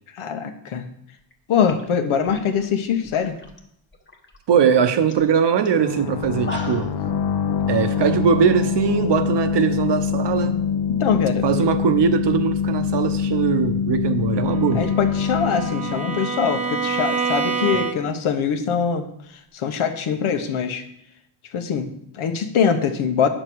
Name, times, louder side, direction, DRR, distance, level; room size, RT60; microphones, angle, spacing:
voice 1, 0.1-0.9 1.5-3.4 10.9-11.4 14.7-20.9 21.5-23.3, left 7 dB, 80° left, 7 dB, 1.2 m, -23 dB
sound 1, 1.2-1.3 1.6-3.6 3.9-4.4 4.7-4.8 5.1-5.3 5.7-5.8 6.2-7.0, left 1 dB, 25° left, 1.3 m, -37 dB
voice 2, 4.5-6.9 7.7-10.6 11.4-14.8, right 7 dB, 60° right, 10 dB, 0.9 m, -20 dB
sound 2, 5.8-17.3, left 7 dB, 55° left, 0.8 m, -24 dB
Bowed string instrument, 14.4-18.3, right 5 dB, 15° right, 0.6 m, -27 dB
10.0 x 6.7 x 4.6 m, 0.74 s
wide cardioid pair, 140°, 48 cm